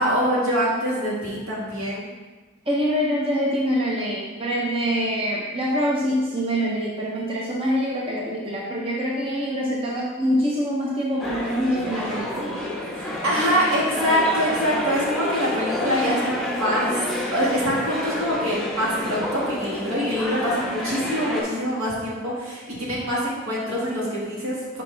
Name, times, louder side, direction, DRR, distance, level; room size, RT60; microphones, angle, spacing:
voice 1, 0.0-2.1 12.9-17.0 17.3-24.8, equal, 75° right, -5 dB, 1.8 m, -24 dB
voice 2, 2.7-12.6, equal, 25° right, -4 dB, 0.6 m, -25 dB
sound 1, 11.2-21.4, left 1 dB, ahead, 0.9 m, -29 dB
5.6 x 5.1 x 3.3 m, 1.3 s
head